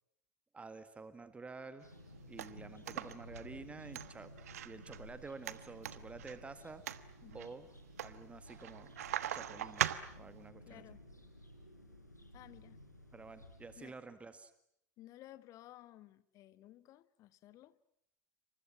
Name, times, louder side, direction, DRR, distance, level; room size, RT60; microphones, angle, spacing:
voice 1, 0.5-1.8 2.3-4.3 4.6-6.8 7.3-7.7 8.0-8.9 9.3-9.9 10.2-10.8 13.1-14.5, right 4 dB, 15° right, 1.8 m, -50 dB
sound 1, 1.8-13.8, left 1 dB, 85° left, 4.6 m, -55 dB
sound 2, 1.8-10.5, right 11 dB, 60° right, 1.2 m, -42 dB
voice 2, 7.2-7.5 10.7-11.0 12.3-12.8 13.8-13.9 15.0-17.7, left 14 dB, 40° left, 1.4 m, -56 dB
28.5 x 26.0 x 7.4 m
figure-of-eight pair, 85°, 9 cm